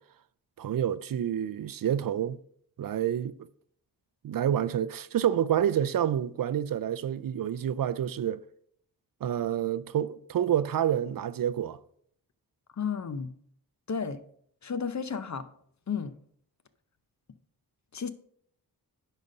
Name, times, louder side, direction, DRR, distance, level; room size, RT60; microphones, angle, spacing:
voice 1, 0.6-2.4 2.8-3.3 4.2-8.4 9.2-11.8, right 10 dB, 60° right, 0.5 m, -28 dB
voice 2, 12.7-13.4 13.9-14.2 14.6-15.5 15.9-16.2 17.9-18.1, left 6 dB, 45° left, 0.7 m, -32 dB
10.0 x 4.2 x 5.3 m
wide cardioid pair, 90°, 39 cm